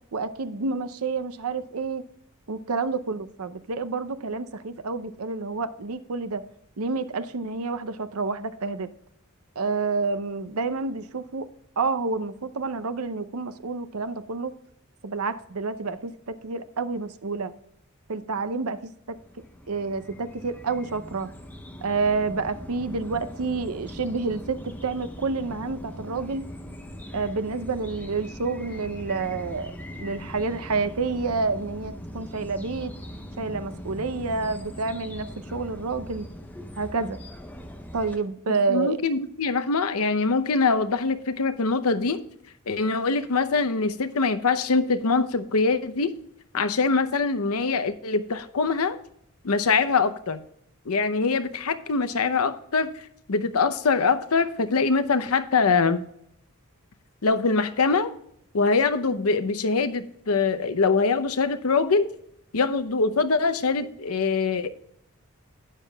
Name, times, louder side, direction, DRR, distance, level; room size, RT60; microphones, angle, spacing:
voice 1, 0.1-2.0 2.5-6.4 6.8-8.9 9.6-11.5 11.8-14.5 15.0-17.5 18.1-19.2 19.7-21.3 21.8-26.4 27.1-32.9 33.4-36.3 36.8-37.2 37.9-39.0, right 4 dB, 85° right, 11 dB, 0.7 m, -29 dB
sound 1, 19.2-38.2, equal, 10° left, 0.8 m, -40 dB
voice 2, 38.7-42.2 42.7-46.1 46.5-49.0 49.4-50.4 50.9-52.9 53.3-56.0 57.2-58.1 58.5-62.1 62.5-64.7, left 4 dB, 85° left, 10 dB, 0.7 m, -23 dB
12.0 x 9.1 x 2.3 m, 0.73 s
head